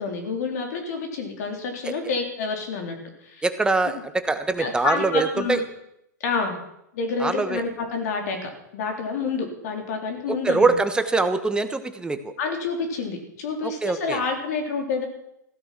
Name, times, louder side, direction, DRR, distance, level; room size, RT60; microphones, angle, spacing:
voice 1, 0.0-3.0 3.2-3.4 4.6-5.6 6.2-6.6 6.9-10.8 12.4-15.1, left 4 dB, 60° left, 4 dB, 3.9 m, -28 dB
voice 2, 3.4-5.6 7.2-7.6 10.3-12.3 13.6-14.2, right 3 dB, 10° right, 10 dB, 1.3 m, -23 dB
15.5 x 12.5 x 6.1 m, 0.79 s
hypercardioid pair, 110°, 10 cm